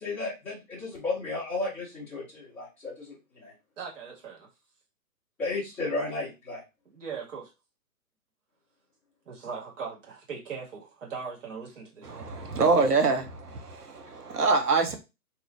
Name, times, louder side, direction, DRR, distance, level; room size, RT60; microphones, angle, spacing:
voice 1, 0.0-3.5 5.4-6.6, left 3 dB, 5° left, 0.5 m, -33 dB
voice 2, 3.8-4.5 6.9-7.5 9.3-12.3 12.6-13.3 14.8-15.0, right 5 dB, 55° right, 1.8 m, -40 dB
voice 3, 12.0-13.2 13.6-15.0, right 4 dB, 85° right, 1.1 m, -24 dB
2.9 x 2.5 x 3.8 m
hypercardioid pair, 135°, 45 cm